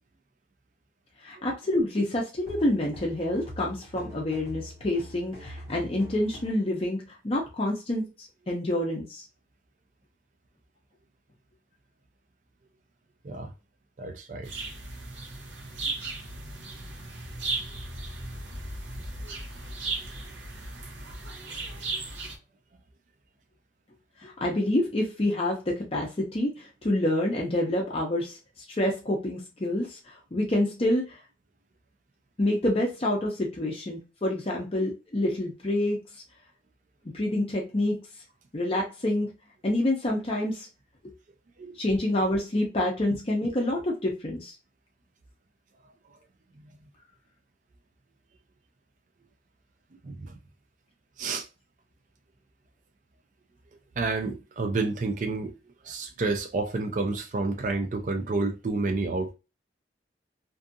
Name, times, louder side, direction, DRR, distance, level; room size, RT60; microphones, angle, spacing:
voice 1, 1.2-9.2 24.2-28.4 28.7-31.2 32.4-36.0 37.1-38.0 38.5-39.3 39.6-40.7 41.8-44.5, left 1 dB, 30° left, 0.5 m, -27 dB
sound 1, 2.4-6.7, equal, 60° right, 1.1 m, -44 dB
voice 2, 14.0-14.5 41.6-41.8 46.6-46.8 50.0-50.4 51.2-51.5 54.0-55.5 55.8-59.3, right 3 dB, 45° right, 0.4 m, -30 dB
sound 2, 14.4-22.4, right 2 dB, 85° right, 0.7 m, -36 dB
2.6 x 2.4 x 2.5 m
head